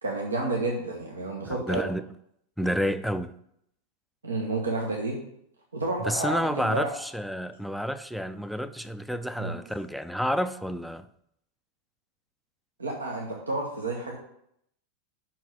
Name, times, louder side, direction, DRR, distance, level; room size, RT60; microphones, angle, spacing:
voice 1, 0.0-1.9 4.2-5.2 5.7-6.9 9.4-9.5 12.8-14.2, right 2 dB, 75° right, 1.1 m, -30 dB
voice 2, 1.5-2.0 2.6-3.3 6.0-11.1, equal, ahead, 0.4 m, -30 dB
5.9 x 4.6 x 6.4 m
figure-of-eight pair, 90°, 0 cm